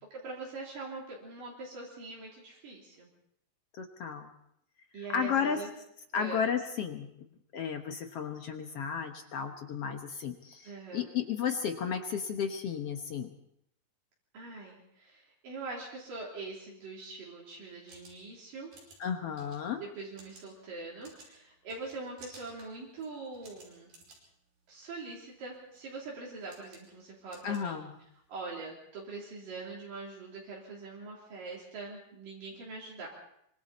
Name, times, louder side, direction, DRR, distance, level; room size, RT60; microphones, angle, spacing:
voice 1, 0.1-3.1 4.9-5.7 6.1-6.4 10.6-11.1 14.3-18.7 19.8-23.9 24.7-27.8 28.3-33.1, right 3 dB, 75° right, -4 dB, 4.9 m, -43 dB
voice 2, 3.8-4.3 5.1-5.6 6.1-7.1 7.5-13.4 19.0-19.8 27.4-27.9, left 7 dB, 60° left, 5 dB, 1.7 m, -33 dB
sound 1, 17.6-28.3, right 2 dB, 90° right, 7.2 m, -58 dB
25.5 x 25.0 x 4.2 m, 0.73 s
omnidirectional pair, 3.9 m